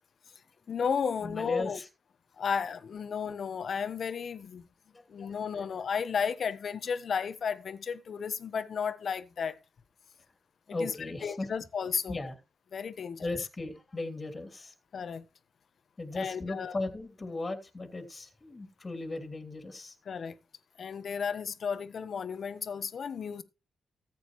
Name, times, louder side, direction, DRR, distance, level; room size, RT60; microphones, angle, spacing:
voice 1, 0.7-1.8 2.4-4.6 5.1-9.5 10.8-10.9 11.2-12.2 12.7-13.2 14.9-15.2 16.1-16.7 20.1-20.3 20.8-23.4, left 6 dB, 55° left, 1.1 m, -33 dB
voice 2, 1.2-1.9 4.9-5.0 10.7-11.5 12.1-12.4 13.2-14.7 15.0-15.2 16.0-19.9, left 2 dB, 30° left, 2.9 m, -37 dB
14.5 x 8.9 x 3.1 m
cardioid pair, 80°, 0 cm